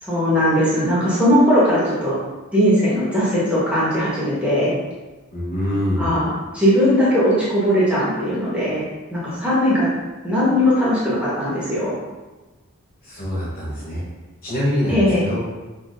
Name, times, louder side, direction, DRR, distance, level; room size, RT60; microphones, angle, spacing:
voice 1, 0.0-2.2 2.5-4.7 6.0-8.8 9.1-9.9 10.2-11.9 14.9-15.3, equal, 5° right, -9 dB, 1.1 m, -19 dB
voice 2, 5.3-6.2 13.0-14.0 14.4-15.4, left 1 dB, 45° left, -6 dB, 0.9 m, -24 dB
5.7 x 2.9 x 2.5 m, 1.2 s
head